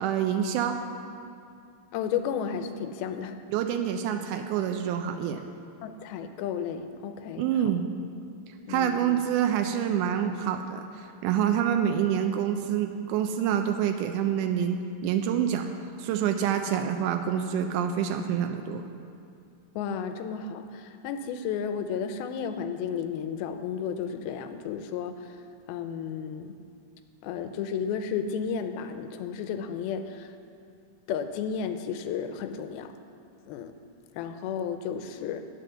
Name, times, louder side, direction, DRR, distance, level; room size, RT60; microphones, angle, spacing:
voice 1, 0.0-0.8 3.5-5.4 7.4-7.9 8.7-15.7 16.0-18.8, right 9 dB, 90° right, 6 dB, 1.8 m, -27 dB
voice 2, 1.9-3.4 5.8-7.8 8.7-9.2 19.8-25.4 25.7-26.6 27.2-30.3 31.1-32.9 33.5-33.7 34.2-35.4, left 7 dB, 90° left, 8 dB, 2.5 m, -33 dB
9.1 x 8.1 x 6.8 m, 2.5 s
omnidirectional pair, 4.3 m